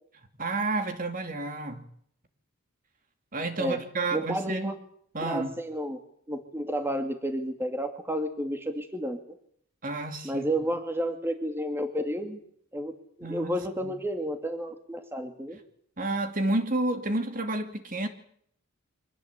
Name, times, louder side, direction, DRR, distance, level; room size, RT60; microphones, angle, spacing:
voice 1, 0.4-1.9 3.3-4.7 5.1-5.6 9.8-10.5 13.2-13.6 13.8-13.9 16.0-18.1, right 2 dB, 40° right, 2.7 m, -30 dB
voice 2, 4.1-4.7 5.2-6.0 6.3-9.2 10.2-12.4 12.7-12.9 13.2-15.6, equal, 10° right, 2.4 m, -31 dB
25.5 x 19.0 x 8.3 m
head